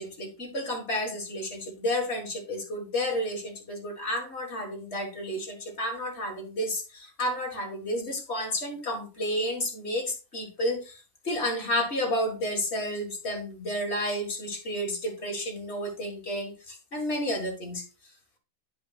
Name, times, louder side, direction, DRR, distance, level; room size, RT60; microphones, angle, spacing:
voice 1, 0.0-17.8, equal, 50° left, 1 dB, 2.1 m, -31 dB
10.5 x 5.1 x 2.5 m, 0.31 s
omnidirectional pair, 1.5 m